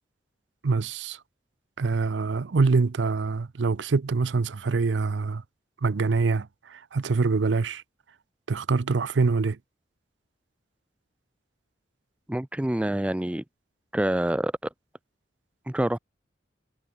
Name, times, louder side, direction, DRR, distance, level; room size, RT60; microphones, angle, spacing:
voice 1, 0.6-1.2 1.8-5.4 5.8-7.8 8.5-9.6, right 4 dB, 90° right, 0.6 m, -25 dB
voice 2, 12.3-13.4 13.9-14.5 15.7-16.0, right 1 dB, 5° right, 0.3 m, -26 dB
head